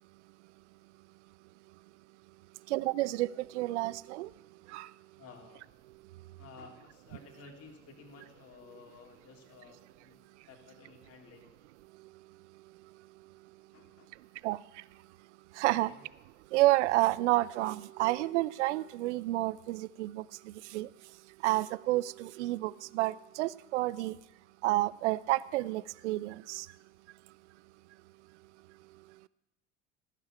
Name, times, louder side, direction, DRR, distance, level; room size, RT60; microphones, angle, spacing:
voice 1, 2.7-4.3 4.7-4.9 14.4-14.6 15.6-15.9 16.5-20.2 20.7-20.9 21.4-24.2 24.6-26.7, right 18 dB, 65° right, 21 dB, 0.6 m, -30 dB
voice 2, 5.2-5.7 6.4-11.4 13.7-14.1 15.7-16.0, left 5 dB, 40° left, 1 dB, 3.5 m, -54 dB
17.5 x 7.5 x 9.3 m, 1.0 s
figure-of-eight pair, 70°, 37 cm